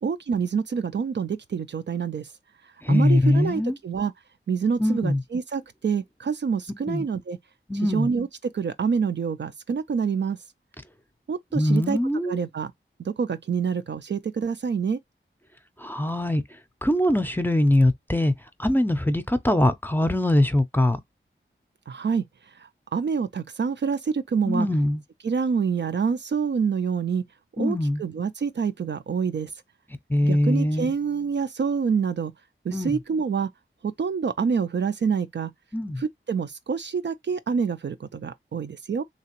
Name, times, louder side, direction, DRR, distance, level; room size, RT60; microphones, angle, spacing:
voice 1, 0.0-2.3 2.9-4.1 4.5-7.4 7.8-8.3 8.5-10.4 11.3-12.0 12.2-12.7 13.0-15.0 21.9-22.2 22.6-24.7 25.2-27.2 27.6-29.5 30.2-32.3 32.6-33.5 33.8-35.5 36.0-39.0, right 6 dB, 60° right, 0.4 m, -27 dB
voice 2, 2.8-3.8 4.8-5.2 6.9-7.0 7.7-8.1 11.5-12.4 15.8-16.4 16.8-18.3 18.6-21.0 24.5-25.0 27.6-28.0 30.1-30.9 32.7-33.0 35.7-36.0, left 1 dB, 10° left, 0.5 m, -22 dB
3.3 x 2.9 x 2.9 m
wide cardioid pair, 85°, 21 cm